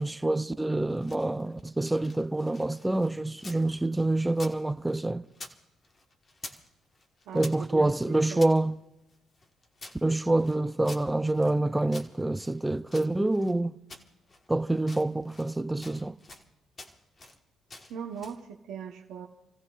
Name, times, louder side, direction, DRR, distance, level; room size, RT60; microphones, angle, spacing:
voice 1, 0.0-5.2 7.3-8.7 10.0-13.8 14.5-16.2, right 2 dB, 10° right, 0.5 m, -27 dB
sound 1, 0.8-3.7 3.9-5.6 5.8-6.7 6.9-8.6 9.1-11.6 11.9-13.6 13.9-14.5 14.8-15.6 15.8-16.5 16.8-17.4 17.7-18.4, left 2 dB, 40° left, 1.5 m, -48 dB
voice 2, 7.3-8.5 17.9-19.3, right 7 dB, 85° right, 0.9 m, -40 dB
29.5 x 15.5 x 2.5 m
cardioid pair, 90°, 0 cm